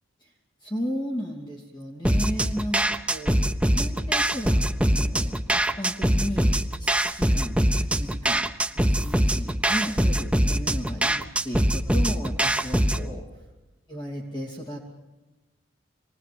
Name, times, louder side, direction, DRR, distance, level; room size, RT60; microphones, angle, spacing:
voice 1, 0.6-3.4 3.7-6.5 6.8-8.4 8.9-13.2 13.9-14.9, equal, 20° left, -2 dB, 2.7 m, -34 dB
sound 1, 2.0-13.1, right 1 dB, 5° right, 0.7 m, -23 dB
26.5 x 19.5 x 7.8 m, 1.1 s
head